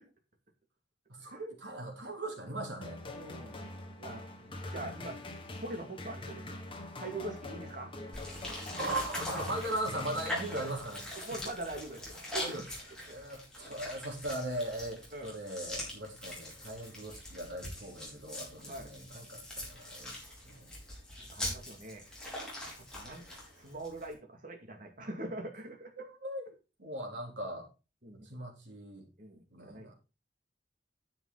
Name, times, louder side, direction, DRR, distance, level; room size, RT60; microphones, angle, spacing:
voice 1, 1.1-3.0 8.7-11.1 12.4-12.6 13.1-20.1 20.4-20.7 26.0-26.5 26.8-27.7 28.2-29.1 29.5-29.9, right 1 dB, 75° right, 3.3 m, -39 dB
sound 1, 2.8-11.2, left 1 dB, 30° left, 1.7 m, -44 dB
voice 2, 3.1-3.6 4.0-5.2 5.6-6.6 7.0-7.9 11.2-12.7 15.1-15.3 18.6-18.9 21.2-22.0 22.8-23.3 23.6-25.9 28.0-28.3 29.2-29.9, right 2 dB, 50° right, 2.3 m, -43 dB
sound 2, 8.1-24.1, left 1 dB, 5° left, 4.7 m, -42 dB
10.0 x 7.2 x 3.9 m
head